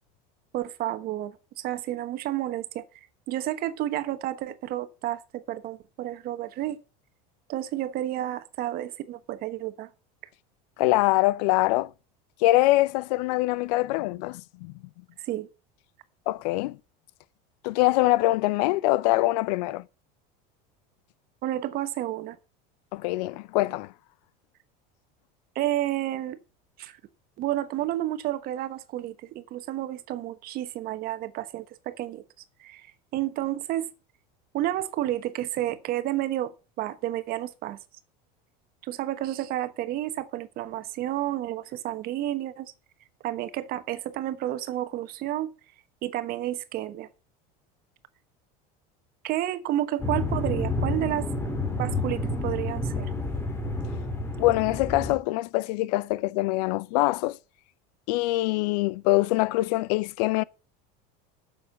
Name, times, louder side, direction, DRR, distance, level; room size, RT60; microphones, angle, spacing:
voice 1, 0.5-2.8 3.3-6.8 7.5-9.9 15.2-15.5 21.4-22.4 25.5-26.4 26.8-27.0 27.4-32.2 32.6-32.9 33.1-33.9 34.5-36.5 36.8-37.8 38.8-42.7 43.2-45.5 46.0-47.1 49.2-51.3 51.7-53.1, right 14 dB, 45° right, 1.2 m, -30 dB
voice 2, 10.8-11.9 12.4-14.7 16.3-16.8 17.6-19.8 22.9-23.9 54.4-57.4 58.1-60.4, left 19 dB, 80° left, 0.6 m, -24 dB
sound 1, 50.0-55.2, left 2 dB, 10° left, 2.6 m, -29 dB
8.7 x 7.1 x 6.4 m
supercardioid pair, 135°, 21 cm